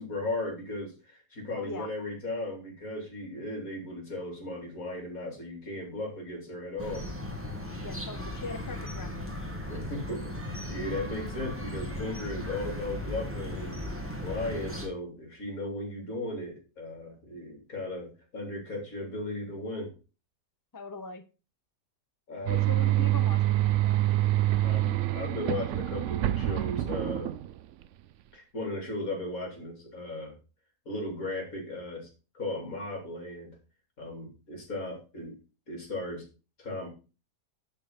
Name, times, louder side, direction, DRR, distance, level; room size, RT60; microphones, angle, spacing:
voice 1, 0.0-7.1 9.7-19.9 22.3-22.7 24.6-27.3 28.3-30.4 30.9-32.1 32.3-33.5 34.0-35.4 35.7-36.2 36.6-36.9, left 1 dB, 50° left, 1 dB, 3.8 m, -36 dB
voice 2, 1.6-1.9 7.8-9.3 20.7-21.2 22.7-24.0, left 3 dB, 30° left, 9 dB, 0.3 m, -41 dB
sound 1, 6.8-14.9, left 1 dB, 10° right, 1.7 m, -37 dB
sound 2, 22.5-27.8, right 14 dB, 90° right, 0.6 m, -26 dB
10.5 x 4.5 x 5.2 m, 0.32 s
omnidirectional pair, 1.8 m